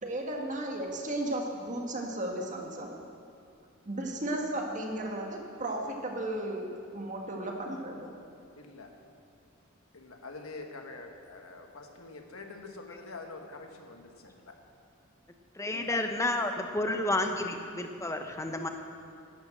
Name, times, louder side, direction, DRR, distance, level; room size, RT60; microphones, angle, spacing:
voice 1, 0.0-2.9 3.8-6.7 6.9-8.1, right 1 dB, 35° right, 1 dB, 1.6 m, -34 dB
voice 2, 8.5-8.9 9.9-14.5 15.7-16.0, left 3 dB, 90° left, 3 dB, 1.4 m, -46 dB
voice 3, 15.5-18.7, left 2 dB, 15° left, 5 dB, 0.9 m, -31 dB
11.5 x 9.6 x 7.6 m, 2.5 s
head